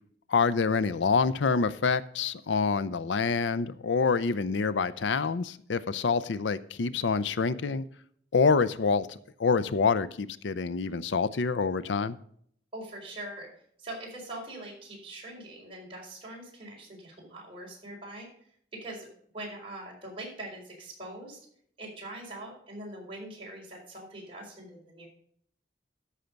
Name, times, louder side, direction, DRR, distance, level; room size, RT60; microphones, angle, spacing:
voice 1, 0.3-7.8 8.3-12.2, left 5 dB, 80° left, 16 dB, 0.5 m, -26 dB
voice 2, 12.7-13.5 13.8-18.3 18.8-19.1 19.3-21.4 21.8-25.1, right 1 dB, 30° right, -3 dB, 4.3 m, -42 dB
13.0 x 5.7 x 5.2 m, 0.63 s
head